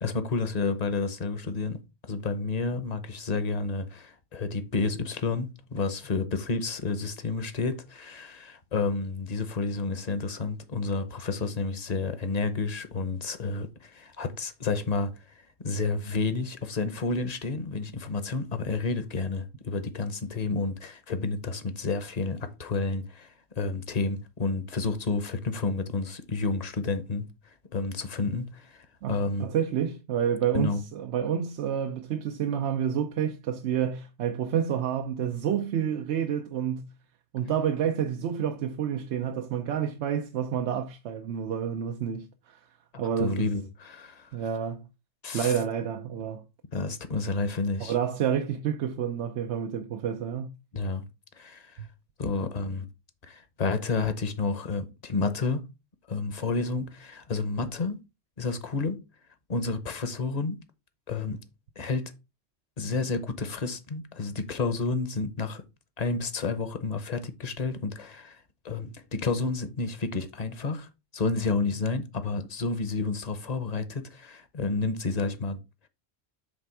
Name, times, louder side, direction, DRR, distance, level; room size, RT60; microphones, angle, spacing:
voice 1, 0.0-27.2 27.7-29.5 30.5-30.8 43.2-44.3 45.2-45.6 46.7-47.9 50.7-51.0 51.4-51.7 52.2-52.9 53.2-55.7 56.1-58.0 58.4-59.0 59.5-60.6 61.1-61.4 61.8-62.1 62.8-65.6 66.0-70.9 71.1-75.6, left 3 dB, 40° left, 0.8 m, -30 dB
voice 2, 29.0-36.9 37.3-42.7 43.0-43.5 44.3-44.9 45.3-46.4 47.8-50.6 51.8-51.9, right 8 dB, 90° right, 0.9 m, -29 dB
7.6 x 3.4 x 4.6 m
omnidirectional pair, 1.1 m